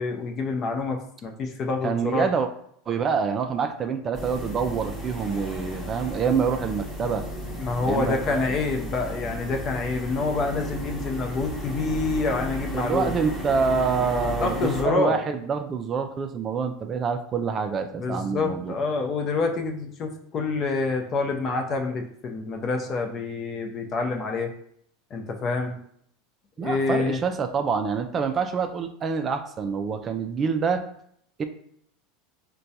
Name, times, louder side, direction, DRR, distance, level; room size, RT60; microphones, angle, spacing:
voice 1, 0.0-2.3 7.6-13.1 14.4-15.2 18.0-24.5 25.1-25.8 26.6-27.2, left 3 dB, 40° left, 3 dB, 0.6 m, -27 dB
voice 2, 1.8-2.5 2.9-7.3 7.8-8.4 12.7-18.8 26.6-30.9 31.4-31.5, right 5 dB, 30° right, 7 dB, 0.3 m, -26 dB
sound 1, 4.1-14.8, equal, 5° left, 0.8 m, -34 dB
4.4 x 2.2 x 2.7 m, 0.67 s
supercardioid pair, 115°, 0 cm